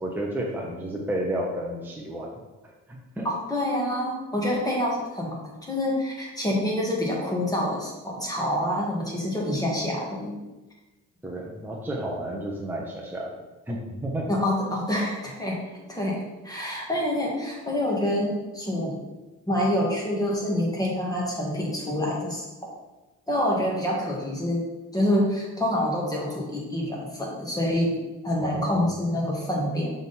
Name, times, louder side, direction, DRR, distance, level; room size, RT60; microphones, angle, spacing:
voice 1, 0.0-2.3 2.6-3.3 11.2-13.3 13.7-14.3 28.4-28.9, right 1 dB, 5° right, -2 dB, 0.9 m, -31 dB
voice 2, 3.2-10.3 14.3-19.0 19.5-22.4 23.3-24.6 24.9-27.9 28.2-29.9, left 1 dB, 10° left, -3 dB, 1.8 m, -27 dB
6.0 x 3.8 x 4.2 m, 1.1 s
cardioid pair, 90°, 30 cm